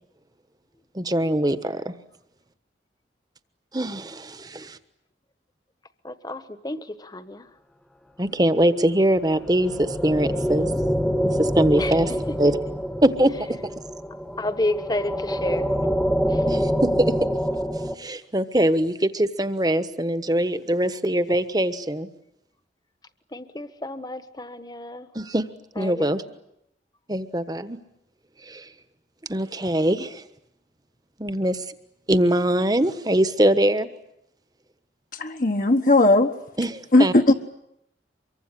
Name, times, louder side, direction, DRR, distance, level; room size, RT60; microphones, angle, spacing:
voice 1, 0.9-1.9 3.7-4.8 8.2-10.9 11.2-12.1 12.4-12.6 13.0-13.6 16.5-17.1 18.0-22.1 25.1-25.5 25.7-26.2 27.1-27.8 28.4-28.7 29.3-30.2 31.2-31.6 32.1-33.9 36.6-37.1, right 1 dB, 20° right, 12 dB, 1.2 m, -22 dB
voice 2, 6.0-7.5 11.8-12.4 14.4-15.7 16.3-16.4 23.3-25.1 25.8-26.3, left 1 dB, 20° left, 11 dB, 1.3 m, -31 dB
sound 1, 9.1-17.9, equal, 5° left, 1.2 m, -26 dB
voice 3, 35.1-36.3 36.9-37.3, left 2 dB, 50° left, 4 dB, 1.3 m, -17 dB
25.0 x 23.5 x 9.9 m, 0.81 s
head